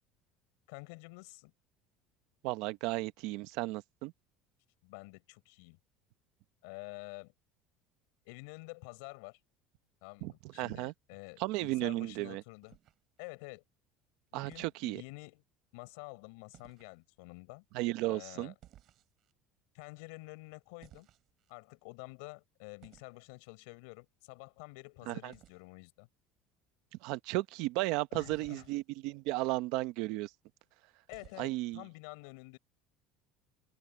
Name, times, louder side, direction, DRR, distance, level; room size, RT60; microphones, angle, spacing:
voice 1, 0.7-1.5 4.8-5.8 6.6-7.3 8.2-9.4 10.0-12.8 13.2-13.6 14.3-15.4 15.7-17.6 18.1-18.5 19.7-21.1 21.5-26.1 28.1-28.7 31.1-32.6, left 30 dB, 80° left, 6.0 m, -49 dB
voice 2, 2.4-4.1 10.2-10.9 11.4-12.4 14.3-15.0 17.7-18.5 25.1-25.3 27.0-30.3 31.4-31.8, right 19 dB, 60° right, 0.9 m, -34 dB
sound 1, 12.6-13.3 14.5-14.8 16.5-17.0 18.6-19.3 20.8-21.5 22.8-23.2 25.3-25.6 28.3-28.8 31.1-31.7, right 13 dB, 40° right, 3.4 m, -60 dB
open air
cardioid pair, 170°, 0 cm